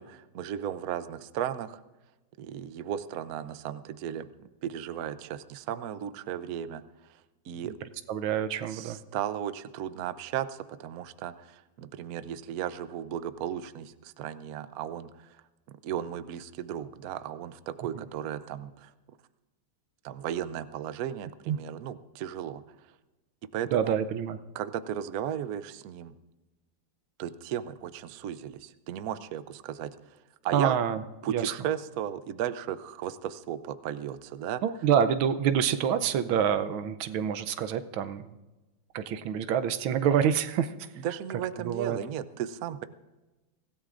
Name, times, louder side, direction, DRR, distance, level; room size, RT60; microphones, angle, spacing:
voice 1, 0.0-1.8 2.4-7.2 7.4-7.7 8.7-15.4 15.7-18.9 20.0-22.6 23.5-24.0 24.5-26.1 27.2-30.2 30.4-30.8 31.2-34.6 41.0-42.8, right 10 dB, 65° right, 12 dB, 0.9 m, -35 dB
voice 2, 8.1-9.0 17.9-18.0 21.5-21.6 23.7-24.4 30.5-31.0 31.3-31.4 34.6-38.4 38.9-40.7 41.6-42.0, right 8 dB, 85° right, 11 dB, 1.5 m, -27 dB
24.5 x 16.0 x 2.5 m, 1.1 s
omnidirectional pair, 2.2 m